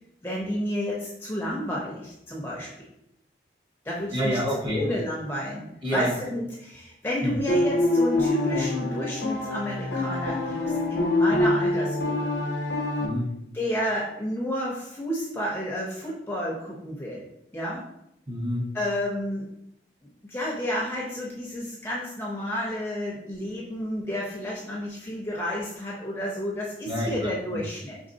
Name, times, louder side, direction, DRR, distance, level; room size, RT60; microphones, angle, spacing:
voice 1, 0.2-2.9 3.8-4.4 4.7-12.3 13.5-17.2 17.5-17.8 18.7-19.5 20.2-28.0, equal, 15° left, -3 dB, 0.6 m, -31 dB
voice 2, 4.1-4.9 5.8-6.1 7.2-7.3 13.0-13.3 18.3-18.6 26.9-27.1 27.5-27.6, equal, 25° right, -3 dB, 1.1 m, -27 dB
sound 1, 7.5-13.1, left 2 dB, 75° left, 0.7 m, -25 dB
5.2 x 3.4 x 2.7 m, 0.79 s
head